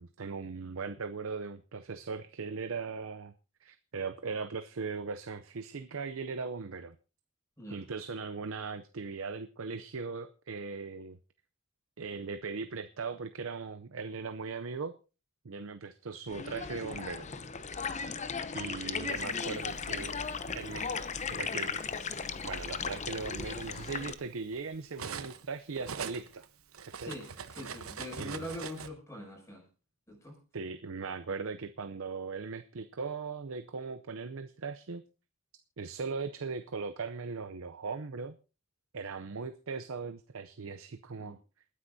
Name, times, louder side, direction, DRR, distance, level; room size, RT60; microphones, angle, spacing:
voice 1, 0.0-3.3 3.6-7.0 7.7-11.2 12.0-14.9 15.4-17.3 18.5-20.2 20.5-20.9 21.3-21.8 22.4-26.5 26.8-27.1 28.2-28.5 30.5-35.0 35.8-38.3 38.9-41.4, right 4 dB, 70° right, 10 dB, 0.6 m, -39 dB
sound 1, 16.3-24.1, left 5 dB, 35° left, 0.8 m, -36 dB
Cutlery silverware, 19.4-20.6 21.6-21.8 22.2-25.5 25.7-28.9, right 6 dB, 85° right, 1.0 m, -44 dB
voice 2, 27.0-29.7 30.1-30.4 41.2-41.4, left 1 dB, 15° left, 0 dB, 6.7 m, -43 dB
28.0 x 9.7 x 2.7 m, 0.33 s
head